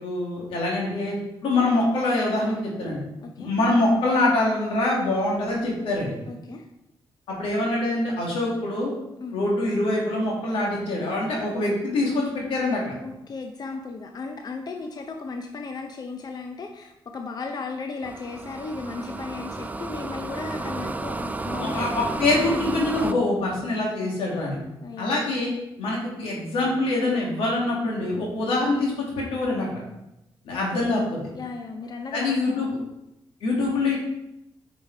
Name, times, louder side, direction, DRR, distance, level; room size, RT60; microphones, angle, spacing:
voice 1, 0.0-3.0 3.4-6.2 7.4-8.9 9.3-12.9 21.6-24.6 25.0-25.5 25.8-29.7 30.4-31.0 32.1-32.8 33.4-34.0, left 2 dB, 90° left, -3 dB, 2.0 m, -24 dB
voice 2, 3.2-3.9 6.3-6.7 9.2-9.4 13.0-22.2 24.8-25.3 30.5-31.0 31.3-32.7, left 4 dB, 45° left, 4 dB, 0.6 m, -36 dB
sound 1, 18.0-23.1, right 2 dB, 15° right, 0.4 m, -32 dB
5.7 x 5.1 x 4.5 m, 0.89 s
cardioid pair, 70°, 9 cm